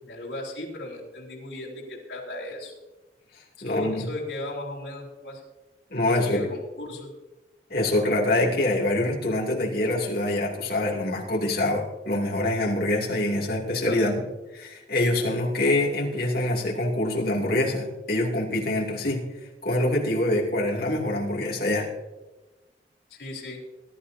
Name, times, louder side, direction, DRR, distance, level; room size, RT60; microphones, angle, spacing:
voice 1, 0.0-2.7 3.6-5.4 6.0-7.1 13.9-14.1 23.1-23.6, left 2 dB, 75° left, -5 dB, 3.5 m, -36 dB
voice 2, 3.6-4.1 5.9-6.4 7.7-14.2 14.6-19.3 19.6-21.9, left 1 dB, 60° left, -2 dB, 2.7 m, -25 dB
20.5 x 11.5 x 2.8 m, 1.1 s
head